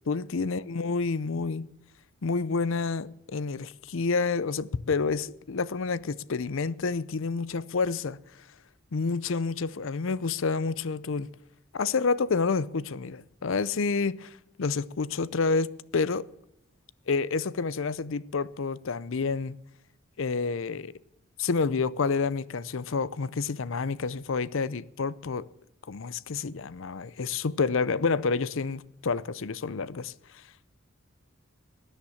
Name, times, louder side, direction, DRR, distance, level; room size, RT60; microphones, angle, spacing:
voice 1, 0.1-1.7 2.2-8.2 8.9-11.3 11.7-16.3 17.1-19.6 20.2-20.9 21.4-25.5 25.9-30.1, left 4 dB, 65° left, 0.6 m, -29 dB
19.0 x 10.5 x 7.2 m
head